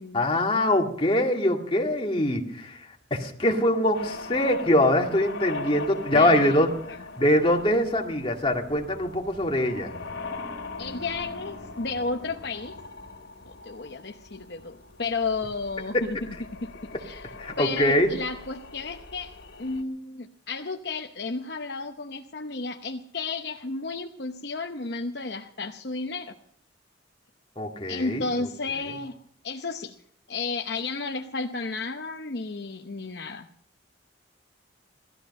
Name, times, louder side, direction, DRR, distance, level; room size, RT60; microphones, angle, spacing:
voice 1, 0.1-6.7 7.2-9.9 15.9-16.0 17.4-18.1 27.6-28.2, left 1 dB, 30° left, 1 dB, 2.1 m, -23 dB
sound 1, 3.9-19.8, left 3 dB, 85° left, 2.6 m, -41 dB
voice 2, 6.1-6.6 6.9-7.0 10.8-12.8 13.5-19.3 19.6-26.4 27.9-29.2 29.4-30.0 30.3-33.5, left 3 dB, 55° left, 5 dB, 0.8 m, -33 dB
18.0 x 13.5 x 5.4 m, 0.65 s
head